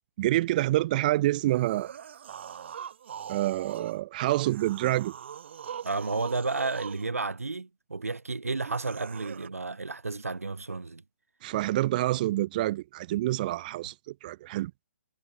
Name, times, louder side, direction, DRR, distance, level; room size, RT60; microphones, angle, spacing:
voice 1, 0.2-1.9 3.3-5.1 11.4-14.7, right 16 dB, 35° right, 1.5 m, -27 dB
sound 1, 1.5-4.0 4.4-7.1 8.6-9.5, right 8 dB, 55° right, 4.6 m, -42 dB
voice 2, 5.8-11.0, right 3 dB, 85° right, 1.9 m, -32 dB
figure-of-eight pair, 135°, 8 cm